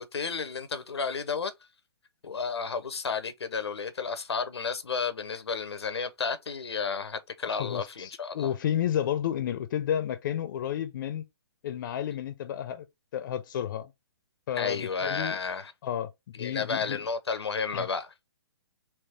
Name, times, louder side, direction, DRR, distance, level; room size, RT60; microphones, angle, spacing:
voice 1, 0.0-1.5 2.2-8.5 14.6-15.7 16.4-18.3, left 5 dB, 85° left, 0.7 m, -32 dB
voice 2, 7.4-11.2 11.6-12.9 13.1-13.9 14.5-15.4 15.8-16.1 16.4-17.0 17.7-17.9, left 10 dB, 50° left, 0.6 m, -31 dB
3.5 x 3.0 x 4.2 m
hypercardioid pair, 135°, 13 cm